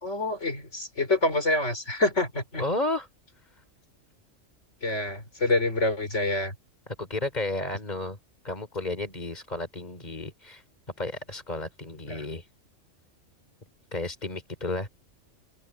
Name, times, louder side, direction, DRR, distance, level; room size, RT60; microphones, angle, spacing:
voice 1, 0.0-2.6 4.8-6.5 12.1-12.2, left 2 dB, 65° left, 4.5 m, -27 dB
voice 2, 2.6-3.1 6.9-8.2 8.4-10.6 11.0-12.4 13.9-14.9, left 2 dB, 35° left, 4.2 m, -32 dB
open air
omnidirectional pair, 1.3 m